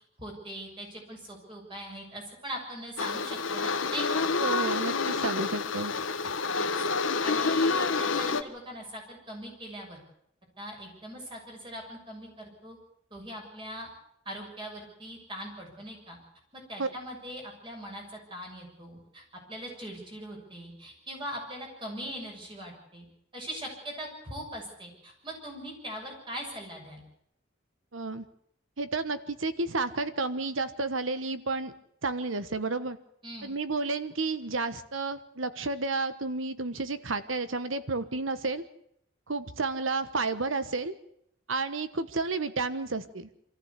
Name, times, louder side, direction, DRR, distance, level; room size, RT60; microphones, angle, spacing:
voice 1, 0.2-4.3 6.5-6.7 7.2-10.0 10.6-12.8 13.1-13.9 14.2-16.2 16.5-19.2 19.5-23.1 23.3-27.0 33.2-33.5, equal, 25° right, 1 dB, 6.7 m, -41 dB
sound 1, 3.0-8.4, left 4 dB, 80° left, 1.2 m, -28 dB
voice 2, 4.4-5.9 16.8-16.9 27.9-28.2 28.8-31.7 32.0-33.0 33.4-38.6 39.3-40.9 41.5-43.3, right 3 dB, 85° right, 12 dB, 1.3 m, -31 dB
25.0 x 14.5 x 8.3 m, 0.74 s
head